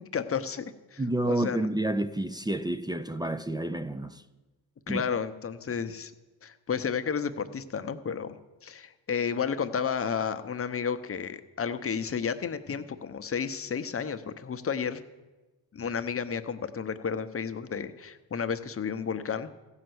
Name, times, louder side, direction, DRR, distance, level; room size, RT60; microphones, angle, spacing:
voice 1, 0.1-1.0 1.3-1.7 4.9-6.1 6.4-15.0 15.7-19.5, left 6 dB, 30° left, 0.8 m, -32 dB
voice 2, 1.0-4.2 4.9-5.0, right 1 dB, 10° right, 0.4 m, -29 dB
15.0 x 5.7 x 7.8 m
supercardioid pair, 75°, 46 cm